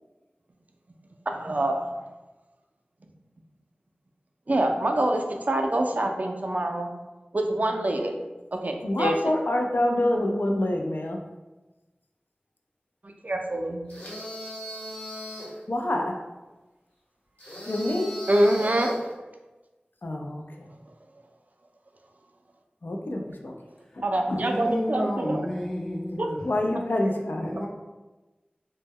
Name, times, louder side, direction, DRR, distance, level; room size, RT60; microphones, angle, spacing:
voice 1, 1.3-1.9 4.5-6.9 7.3-8.1 8.5-9.3 13.0-13.8 18.3-19.3 24.0-25.4 26.2-26.3 27.5-27.6, right 1 dB, 50° right, 3 dB, 0.3 m, -26 dB
voice 2, 8.8-11.2 15.7-16.1 17.7-18.1 20.0-20.4 22.8-23.5 26.4-27.5, left 1 dB, 70° left, 2 dB, 0.4 m, -26 dB
sound 1, 13.9-15.6 17.4-19.1, left 1 dB, 55° left, 1.0 m, -38 dB
voice 3, 24.3-26.4 27.4-27.7, equal, 15° left, -2 dB, 0.5 m, -30 dB
2.1 x 2.1 x 3.4 m, 1.1 s
wide cardioid pair, 45°, 4 cm